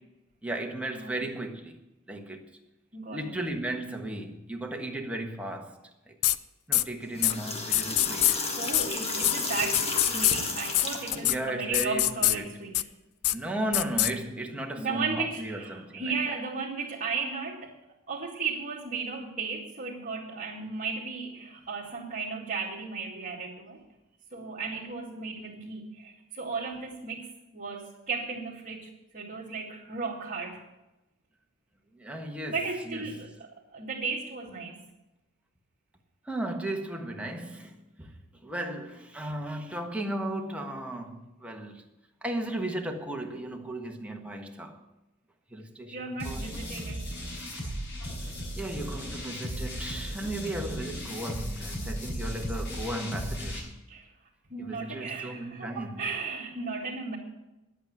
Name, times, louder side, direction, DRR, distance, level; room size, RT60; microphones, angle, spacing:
voice 1, 0.4-1.8 2.1-2.5 3.1-5.8 6.1-6.2 6.7-8.7 11.2-12.7 13.3-16.1 31.9-32.6 32.8-33.1 36.2-38.2 38.4-41.8 42.2-44.8 45.5-46.5 48.6-53.7 54.6-56.0, right 1 dB, 5° right, 1.4 m, -35 dB
voice 2, 2.9-3.3 8.6-12.8 14.8-17.8 18.1-23.8 24.3-30.6 32.5-34.8 45.9-47.1 53.9-54.1 54.5-57.2, right 4 dB, 40° right, 2.0 m, -35 dB
sound 1, 6.2-6.4 6.7-6.8 7.2-7.3 7.7-8.3 8.7-8.8 9.2-9.3 9.7-10.4 10.7-10.8 11.1-11.4 11.7-12.4 12.7-12.8 13.2-13.3 13.7-14.1, left 14 dB, 75° left, 0.5 m, -23 dB
agua llave, 7.0-11.3, left 3 dB, 30° left, 1.6 m, -32 dB
sound 2, 46.2-53.6, equal, 55° left, 5.4 m, -36 dB
11.0 x 8.3 x 9.3 m
head